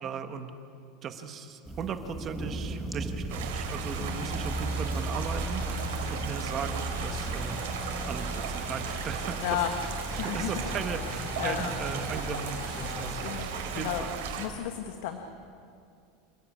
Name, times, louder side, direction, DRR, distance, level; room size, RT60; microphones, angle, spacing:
voice 1, 0.0-0.5 1.0-9.4 10.1-14.1, right 6 dB, 25° right, 8 dB, 1.4 m, -38 dB
sound 1, 1.7-14.6, right 2 dB, ahead, 1.3 m, -36 dB
sound 2, 3.3-13.5, left 2 dB, 75° left, 6.7 m, -42 dB
sound 3, 3.3-14.5, right 7 dB, 75° right, 3.9 m, -37 dB
voice 2, 4.0-4.5 5.7-6.2 9.4-9.7 10.2-10.8 11.4-11.7 13.2-14.1 14.4-15.2, left 11 dB, 60° left, 6 dB, 1.6 m, -34 dB
28.0 x 17.5 x 8.6 m, 2.4 s
supercardioid pair, 175°, 0 cm